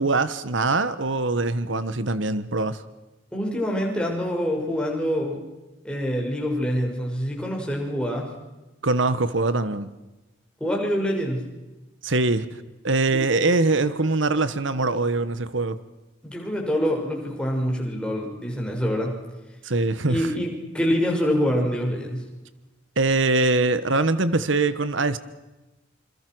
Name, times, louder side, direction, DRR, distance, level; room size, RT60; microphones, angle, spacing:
voice 1, 0.0-2.8 8.8-9.9 12.0-12.5 12.8-15.8 19.6-20.3 23.0-25.2, right 3 dB, 75° right, 1.2 m, -23 dB
voice 2, 3.3-5.4 5.8-8.3 10.6-11.5 13.1-13.2 16.2-19.2 20.1-22.2, equal, 5° left, 6.2 m, -25 dB
27.5 x 27.0 x 6.3 m
head